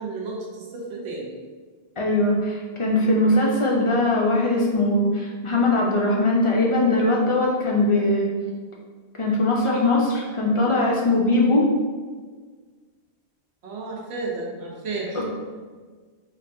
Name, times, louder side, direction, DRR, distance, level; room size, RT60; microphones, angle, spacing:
voice 1, 0.0-1.4 13.6-15.2, right 3 dB, 75° right, -2 dB, 1.0 m, -32 dB
voice 2, 2.0-8.3 9.2-11.7 15.1-15.2, left 2 dB, 50° left, -2 dB, 0.3 m, -21 dB
4.3 x 2.6 x 2.6 m, 1.5 s
omnidirectional pair, 1.1 m